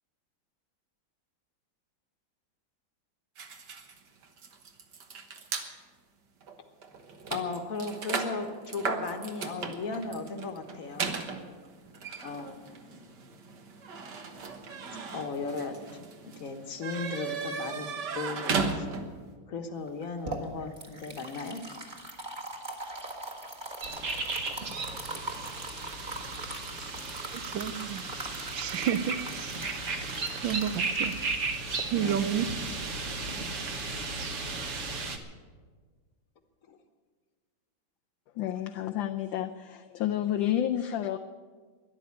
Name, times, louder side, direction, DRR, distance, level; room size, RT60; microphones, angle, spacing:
sound 1, 3.4-5.7 6.4-6.6 6.8-19.3, right 4 dB, 60° right, 1.8 m, -36 dB
voice 1, 7.3-11.2 12.2-13.0 15.1-18.9 19.5-21.6 32.0-32.2 36.7-36.8, left 4 dB, 45° left, 6 dB, 1.5 m, -36 dB
sound 2, 19.9-32.9, right 2 dB, 25° right, 1.6 m, -42 dB
sound 3, 23.8-35.2, right 3 dB, 45° right, 1.4 m, -35 dB
voice 2, 27.3-28.0 28.5-29.5 30.4-31.2 31.9-32.5, right 9 dB, 75° right, 14 dB, 1.3 m, -30 dB
voice 3, 38.3-41.2, left 11 dB, 75° left, 6 dB, 1.3 m, -30 dB
13.0 x 11.0 x 9.6 m, 1.5 s
omnidirectional pair, 2.2 m